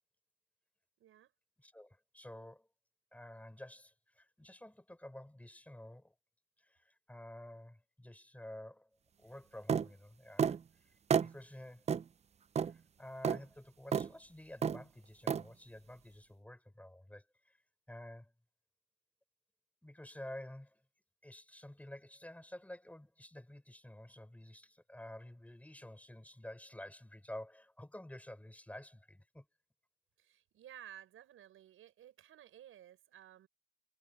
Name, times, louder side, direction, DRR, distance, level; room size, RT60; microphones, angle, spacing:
voice 1, 1.0-1.3 30.2-33.5, right 11 dB, 80° right, 6.3 m, -55 dB
voice 2, 1.6-2.7 3.1-6.1 6.6-8.9 9.2-11.9 12.6-17.6 17.9-18.3 19.8-20.8 21.2-29.5, left 1 dB, 5° left, 4.6 m, -51 dB
sound 1, 9.7-9.9 10.4-10.6 11.1-11.3 11.9-12.0 12.6-12.7 13.2-13.4 13.9-14.1 14.6-14.8 15.3-15.4, right 7 dB, 30° right, 0.4 m, -30 dB
cardioid pair, 110°, 21 cm